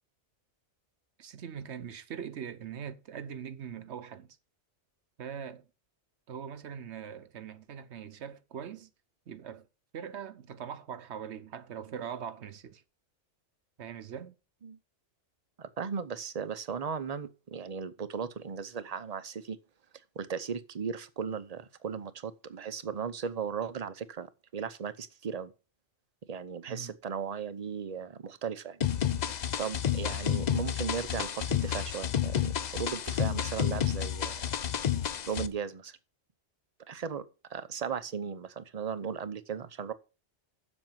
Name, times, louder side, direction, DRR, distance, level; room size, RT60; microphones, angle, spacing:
voice 1, 1.2-4.4 5.2-5.6 6.3-8.9 9.3-9.7 9.9-12.8 13.8-14.3 26.7-26.9, right 8 dB, 65° right, 1.1 m, -41 dB
voice 2, 15.6-19.6 20.2-24.3 24.5-25.5 26.3-28.8 29.3-34.5 35.3-36.0 36.9-37.2 37.5-39.9, right 6 dB, 40° right, 0.8 m, -36 dB
sound 1, 28.8-35.5, left 9 dB, 50° left, 0.6 m, -30 dB
7.7 x 6.3 x 7.4 m
omnidirectional pair, 1.2 m